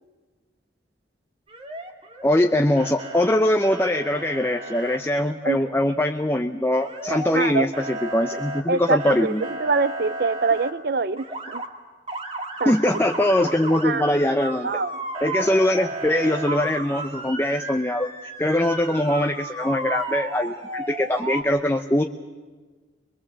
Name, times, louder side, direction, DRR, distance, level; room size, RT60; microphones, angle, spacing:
Motor vehicle (road) / Siren, 1.5-2.5 2.8-3.3 3.6-5.0 6.8-7.5 7.7-10.7 11.2-11.7 12.1-21.4, right 2 dB, 35° right, 2.2 m, -33 dB
voice 1, 2.2-9.4 12.6-14.7 15.2-18.1 18.4-22.0, left 1 dB, 15° left, 5 dB, 0.7 m, -22 dB
voice 2, 7.3-7.7 8.7-11.6 12.6-12.7 13.8-14.0 14.6-15.0, right 4 dB, 60° right, 15 dB, 0.7 m, -24 dB
22.5 x 22.5 x 7.5 m, 1.4 s
head